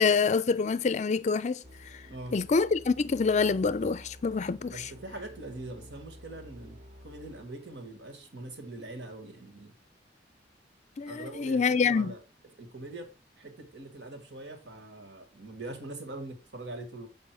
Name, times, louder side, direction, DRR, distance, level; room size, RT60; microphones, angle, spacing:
voice 1, 0.0-1.6 2.3-4.9 11.0-12.1, left 5 dB, 40° left, 0.4 m, -26 dB
sound 1, 1.6-9.1, equal, 40° right, 1.1 m, -51 dB
voice 2, 4.7-9.7 11.1-12.2 12.6-17.1, right 2 dB, 75° right, 1.9 m, -43 dB
7.6 x 5.5 x 4.7 m
head